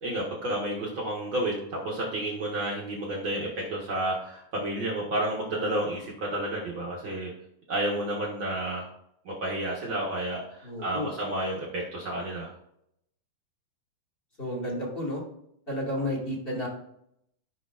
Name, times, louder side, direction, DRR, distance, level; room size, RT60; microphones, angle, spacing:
voice 1, 0.0-7.3 7.7-8.8 9.2-12.5, right 1 dB, 55° right, -4 dB, 1.4 m, -31 dB
voice 2, 10.6-11.1 14.4-15.2 15.7-16.7, left 1 dB, 20° left, -4 dB, 1.8 m, -31 dB
14.5 x 6.2 x 2.5 m, 0.76 s
omnidirectional pair, 3.9 m